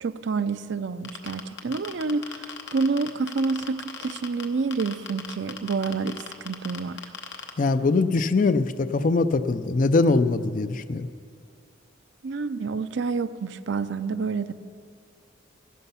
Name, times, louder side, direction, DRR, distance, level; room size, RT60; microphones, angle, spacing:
voice 1, 0.0-7.0 12.2-14.5, right 4 dB, 60° right, 13 dB, 0.4 m, -28 dB
sound 1, 1.0-4.4 4.7-7.5, left 6 dB, 60° left, 1.0 m, -36 dB
voice 2, 7.6-11.1, left 3 dB, 40° left, 11 dB, 0.4 m, -22 dB
14.0 x 11.0 x 5.7 m, 2.2 s
head